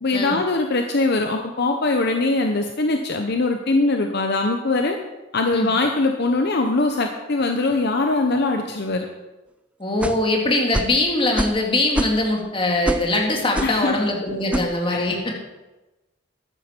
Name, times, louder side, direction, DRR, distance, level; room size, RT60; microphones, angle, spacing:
voice 1, 0.0-5.0 5.3-9.0 13.6-13.9 14.9-15.3, left 2 dB, 55° left, 4 dB, 0.8 m, -22 dB
voice 2, 9.8-15.3, left 2 dB, 25° left, 0 dB, 1.9 m, -22 dB
Swoosh Swish, 10.0-10.3 10.7-11.0 11.4-11.6 11.9-12.4 12.9-13.1 13.6-13.8 14.5-14.7, right 1 dB, 5° right, 0.4 m, -25 dB
13.0 x 9.7 x 4.5 m, 1.1 s
head